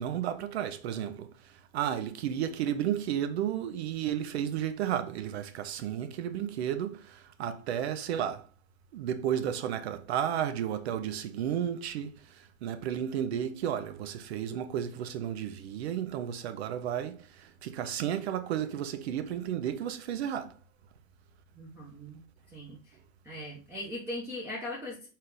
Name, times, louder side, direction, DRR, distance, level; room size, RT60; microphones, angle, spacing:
voice 1, 0.0-8.5 8.9-20.5, right 10 dB, 50° right, 0.6 m, -33 dB
voice 2, 21.6-22.2 22.5-23.0 23.2-25.1, left 1 dB, 5° right, 0.7 m, -39 dB
4.2 x 2.5 x 3.8 m
hypercardioid pair, 125°, 41 cm